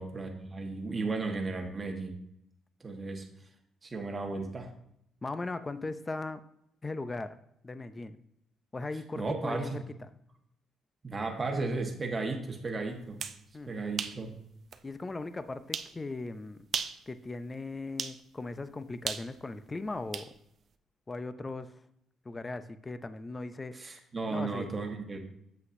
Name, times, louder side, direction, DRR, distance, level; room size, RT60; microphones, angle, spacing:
voice 1, 0.0-2.2 2.8-3.3 3.8-4.7 9.1-9.8 11.0-13.2 13.7-14.4 23.7-25.2, right 3 dB, 20° right, 2 dB, 1.2 m, -34 dB
voice 2, 5.2-6.4 6.8-7.4 7.6-8.2 8.7-9.7 13.5-13.7 14.8-16.6 17.1-20.3 21.1-21.8 22.2-23.8 24.3-24.7, left 3 dB, 20° left, 12 dB, 0.4 m, -38 dB
sound 1, 13.0-13.4 14.0-14.2 14.7-14.8 15.7-15.9 16.6-17.0 18.0-18.2 19.1-20.3, right 7 dB, 45° right, 0.5 m, -35 dB
8.4 x 7.9 x 2.6 m, 0.76 s
cardioid pair, 145°, 0 cm